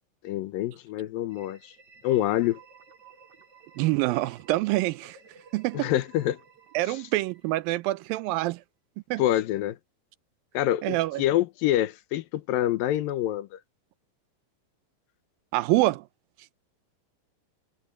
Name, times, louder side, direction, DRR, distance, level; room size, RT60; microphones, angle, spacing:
voice 1, 0.2-1.7 2.0-2.6 5.7-6.4 6.9-7.0 9.2-9.8 10.5-13.6, left 13 dB, 85° left, 2.7 m, -26 dB
sound 1, 1.3-8.0, right 5 dB, 45° right, 3.7 m, -54 dB
voice 2, 3.8-5.2 5.5-5.9 6.7-8.6 9.1-9.2 10.8-11.2 15.5-16.0, right 18 dB, 90° right, 2.4 m, -26 dB
omnidirectional pair, 4.0 m